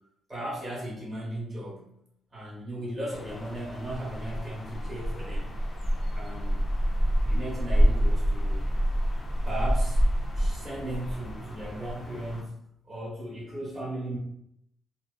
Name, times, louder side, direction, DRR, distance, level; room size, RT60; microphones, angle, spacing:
voice 1, 0.3-1.9 2.3-5.5 6.1-6.6 7.2-8.6 9.4-10.0 10.4-14.2, right 1 dB, 25° right, -5 dB, 1.0 m, -36 dB
sound 1, 3.1-12.4, equal, 40° left, 0.5 m, -27 dB
2.5 x 2.3 x 2.2 m, 0.75 s
cardioid pair, 90°, 0 cm